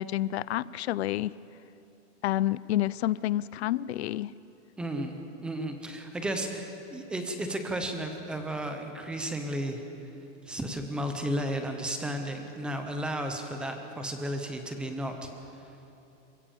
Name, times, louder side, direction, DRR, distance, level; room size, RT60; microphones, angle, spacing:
voice 1, 0.0-1.3 2.2-4.3, left 14 dB, 55° left, 20 dB, 0.5 m, -29 dB
voice 2, 4.8-9.8 10.5-15.3, right 1 dB, 5° right, 5 dB, 0.5 m, -33 dB
28.0 x 16.5 x 7.1 m, 2.9 s
supercardioid pair, 175°, 39 cm